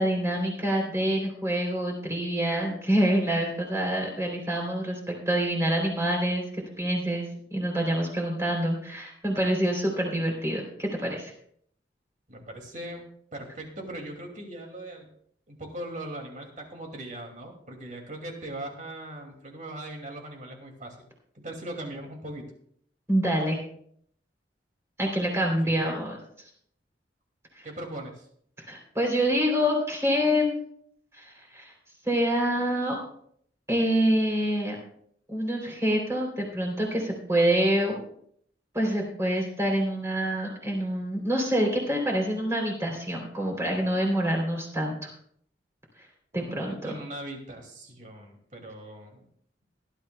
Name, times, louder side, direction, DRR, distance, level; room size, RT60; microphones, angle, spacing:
voice 1, 0.0-11.3 23.1-23.6 25.0-26.2 27.6-27.7 28.6-30.6 31.1-31.7 32.0-33.0 33.7-34.8 35.3-38.0 38.7-45.1 46.0-46.1 46.3-46.9, equal, 15° right, 0 dB, 3.3 m, -26 dB
voice 2, 12.3-13.0 13.3-15.1 15.5-21.1 21.3-22.5 25.6-25.9 27.6-28.3 46.3-49.3, right 1 dB, 40° right, 2 dB, 2.4 m, -40 dB
19.0 x 12.0 x 2.3 m, 0.65 s
head